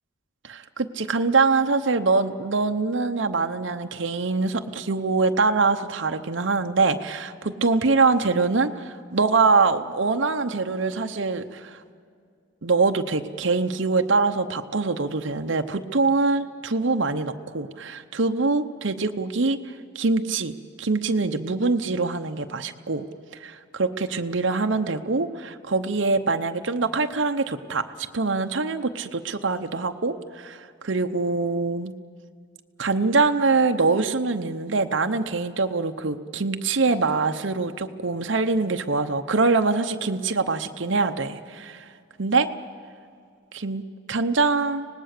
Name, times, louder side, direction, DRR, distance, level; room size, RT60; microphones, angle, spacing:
voice 1, 0.4-11.8 12.6-19.6 19.9-23.1 23.4-27.8 28.1-31.9 32.8-41.9 42.2-42.5 43.5-43.8 44.1-44.9, right 3 dB, 65° right, 6 dB, 0.8 m, -24 dB
25.0 x 19.0 x 6.7 m, 2.3 s
head